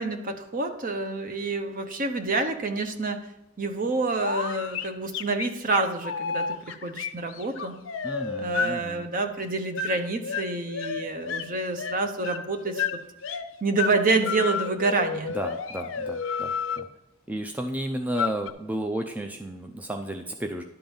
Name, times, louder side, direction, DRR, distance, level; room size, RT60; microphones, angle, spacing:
voice 1, 0.0-3.2 3.6-7.8 8.4-13.0 13.6-15.4, right 3 dB, 40° right, 7 dB, 0.9 m, -28 dB
sound 1, 4.2-8.7 9.7-10.0 10.2-11.5 11.8-13.5 13.8-14.0 14.2-16.9 18.1-18.5, left 6 dB, 65° left, 0.6 m, -31 dB
voice 2, 8.0-9.1 15.3-16.9 17.3-20.6, right 1 dB, 5° right, 3 dB, 0.5 m, -33 dB
11.5 x 3.9 x 7.0 m, 0.90 s
head